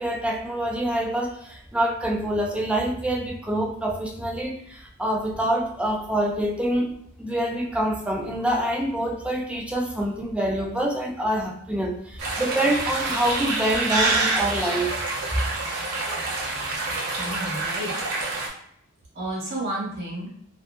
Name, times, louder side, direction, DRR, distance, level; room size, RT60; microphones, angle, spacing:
voice 1, 0.0-6.9 7.2-15.0 17.1-17.2, right 1 dB, 5° right, -1 dB, 0.3 m, -26 dB
sound 1, 12.2-18.5, right 3 dB, 85° right, 0.7 m, -27 dB
voice 2, 17.2-17.9 19.1-20.3, right 1 dB, 50° right, -4 dB, 1.0 m, -31 dB
2.4 x 2.1 x 2.6 m, 0.70 s
head